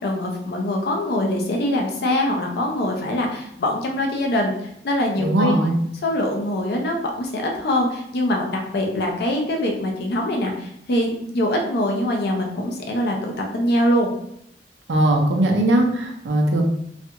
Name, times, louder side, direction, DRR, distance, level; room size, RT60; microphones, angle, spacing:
voice 1, 0.0-5.5 6.0-14.1, left 1 dB, 60° left, 1 dB, 0.4 m, -23 dB
voice 2, 5.2-5.7 14.9-16.6, right 1 dB, 80° right, 2 dB, 0.5 m, -19 dB
2.4 x 2.2 x 2.8 m, 0.75 s
head